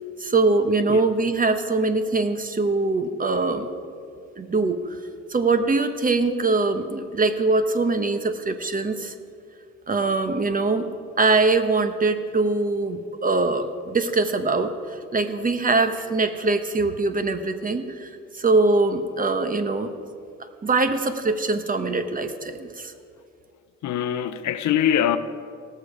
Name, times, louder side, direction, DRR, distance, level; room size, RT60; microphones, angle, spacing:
voice 1, 0.2-3.7 4.4-4.8 5.3-9.1 9.9-10.9 11.2-14.7 15.1-19.9 20.6-22.9, right 3 dB, 30° right, 1.0 m, -22 dB
voice 2, 23.8-25.2, left 10 dB, 70° left, 0.7 m, -23 dB
19.0 x 6.7 x 4.9 m
cardioid pair, 90°, 30 cm